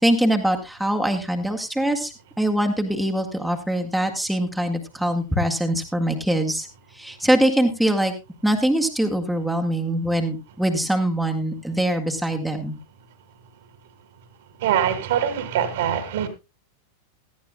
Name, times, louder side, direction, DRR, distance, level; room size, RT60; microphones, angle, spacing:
voice 1, 0.0-6.7 6.9-8.1 8.4-12.8, right 1 dB, ahead, 1.8 m, -23 dB
voice 2, 14.6-16.3, right 9 dB, 55° right, 2.4 m, -23 dB
17.5 x 13.0 x 2.3 m
figure-of-eight pair, 90°, 0 cm